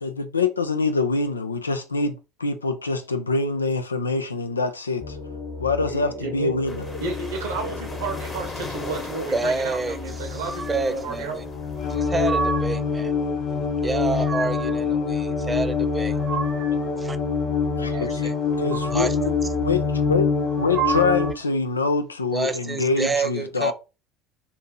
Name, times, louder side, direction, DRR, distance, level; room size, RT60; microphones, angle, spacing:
voice 1, 0.0-5.2 5.6-6.8 17.8-18.3 18.6-20.3 20.6-23.7, left 4 dB, 85° left, 0.4 m, -25 dB
sound 1, 5.0-21.3, left 5 dB, 55° left, 0.9 m, -27 dB
voice 2, 5.8-6.6 7.0-11.6 17.9-18.1, right 4 dB, 75° right, 1.0 m, -32 dB
sound 2, 6.7-12.0, left 3 dB, 25° left, 1.0 m, -39 dB
voice 3, 9.3-11.4 11.9-13.2 13.8-16.1 17.0-17.2 17.9-18.3 18.9-19.2 22.3-23.7, right 3 dB, 20° right, 0.4 m, -28 dB
sound 3, 10.4-11.0 11.9-12.9 13.8-14.8 15.8-16.9 18.4-19.3 20.4-21.5, right 6 dB, 45° right, 0.8 m, -31 dB
2.8 x 2.7 x 3.5 m
figure-of-eight pair, 65°, 0 cm